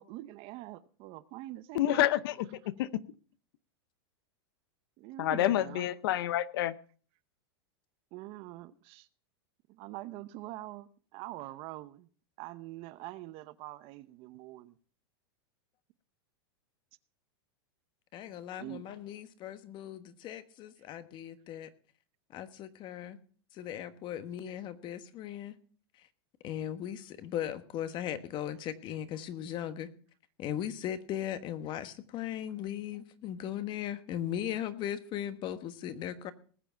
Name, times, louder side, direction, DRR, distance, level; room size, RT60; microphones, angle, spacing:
voice 1, 0.0-2.1 5.0-5.9 8.1-9.1 9.7-12.1 12.4-14.8 18.6-18.8, right 16 dB, 45° right, 0.8 m, -44 dB
voice 2, 1.7-2.9 5.2-6.7, left 13 dB, 65° left, 0.7 m, -28 dB
voice 3, 18.1-21.7 22.3-23.2 23.5-25.6 26.0-26.1 26.4-29.9 30.4-36.3, left 10 dB, 35° left, 1.3 m, -38 dB
19.5 x 7.1 x 5.6 m
supercardioid pair, 135°, 13 cm